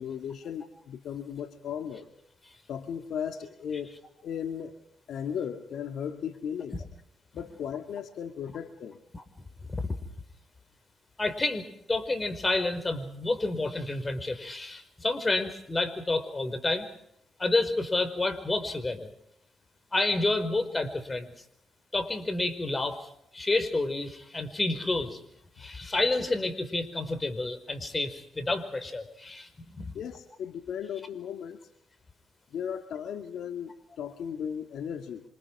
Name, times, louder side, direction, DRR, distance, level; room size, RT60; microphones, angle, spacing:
voice 1, 0.0-2.1 2.7-4.8 5.1-6.8 7.3-9.0 29.9-31.6 32.5-35.2, left 8 dB, 75° left, 6 dB, 2.1 m, -36 dB
voice 2, 11.2-16.9 17.4-19.1 19.9-21.3 21.9-25.2 25.6-29.9, left 2 dB, 25° left, 10 dB, 5.1 m, -29 dB
28.0 x 26.5 x 4.8 m, 0.72 s
cardioid pair, 70°, 0 cm